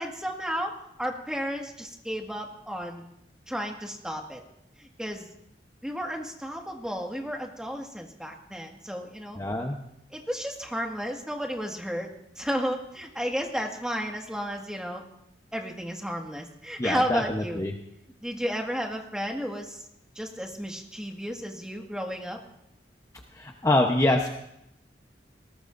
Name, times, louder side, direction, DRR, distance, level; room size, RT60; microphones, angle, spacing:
voice 1, 0.0-3.0 3.5-4.4 4.8-5.3 5.8-9.4 10.1-12.1 12.4-15.0 15.5-17.6 18.2-19.8 20.2-22.4, equal, 5° right, 1 dB, 1.8 m, -33 dB
voice 2, 9.4-9.8 16.8-17.2 17.6-17.7 23.4-24.3, left 1 dB, 20° left, 1 dB, 1.0 m, -24 dB
20.5 x 19.0 x 2.6 m, 0.80 s
head